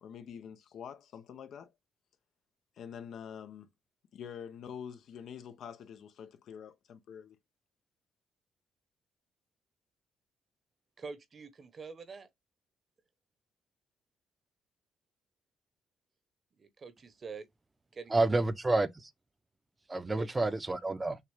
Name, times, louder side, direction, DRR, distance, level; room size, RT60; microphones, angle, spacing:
voice 1, 0.0-1.7 2.8-3.7 4.1-7.4, left 8 dB, 70° left, 0.7 m, -46 dB
voice 2, 11.0-12.3 16.6-17.5 17.9-18.2 20.1-20.5, right 4 dB, 40° right, 1.0 m, -45 dB
voice 3, 18.1-19.1 19.9-21.2, right 2 dB, 20° right, 0.6 m, -29 dB
6.6 x 2.4 x 3.3 m
cardioid pair, 90°, 0 cm